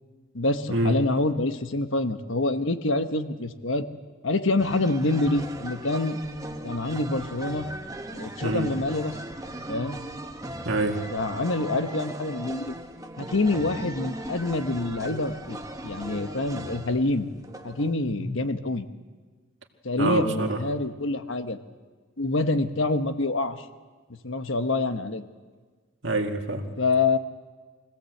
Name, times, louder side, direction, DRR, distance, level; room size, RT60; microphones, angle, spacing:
voice 1, 0.3-3.8 4.2-6.2 6.6-7.7 8.1-9.2 9.7-10.0 11.1-12.7 13.2-15.6 15.8-17.3 17.6-18.9 19.8-21.6 22.2-23.7 24.2-25.2 26.8-27.2, left 2 dB, 70° left, 9 dB, 1.3 m, -26 dB
sound 1, 4.6-17.9, right 1 dB, 15° right, 1.1 m, -38 dB
voice 2, 10.6-11.0 18.2-18.3 20.0-20.6 26.0-26.7, right 2 dB, 65° right, 3 dB, 2.0 m, -26 dB
24.0 x 16.5 x 7.9 m, 1.4 s
head